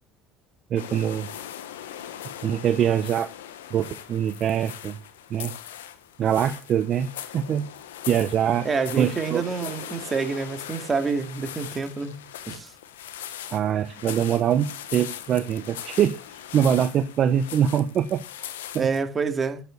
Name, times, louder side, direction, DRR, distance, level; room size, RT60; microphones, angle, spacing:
voice 1, 0.7-1.3 2.4-3.3 3.7-5.0 5.3-5.5 6.2-7.1 7.3-7.7 8.1-8.7 8.9-9.8 13.5-16.2 16.5-18.2 18.7-18.9, right 9 dB, 50° right, 0.9 m, -23 dB
sound 1, 0.8-19.0, left 11 dB, 85° left, 1.2 m, -40 dB
voice 2, 8.6-12.1 12.5-12.7 18.8-19.6, right 5 dB, 30° right, 2.4 m, -27 dB
9.5 x 8.9 x 8.3 m
hypercardioid pair, 70°, 0 cm